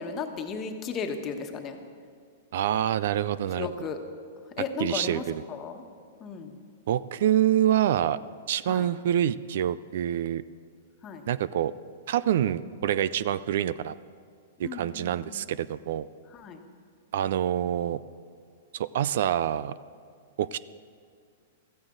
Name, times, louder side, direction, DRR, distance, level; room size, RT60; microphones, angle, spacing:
voice 1, 0.0-1.8 3.5-4.0 4.6-5.8 6.2-6.6 8.7-8.9 11.0-11.3 14.6-15.5 16.3-16.6, left 5 dB, 30° left, 5 dB, 1.3 m, -35 dB
voice 2, 2.5-3.7 4.8-5.4 6.9-8.2 8.5-10.4 11.3-11.7 12.1-14.0 14.6-16.1 17.1-18.0 18.7-19.7 20.4-20.6, right 11 dB, 65° right, 18 dB, 0.4 m, -26 dB
15.0 x 14.0 x 3.9 m, 2.1 s
hypercardioid pair, 130°, 0 cm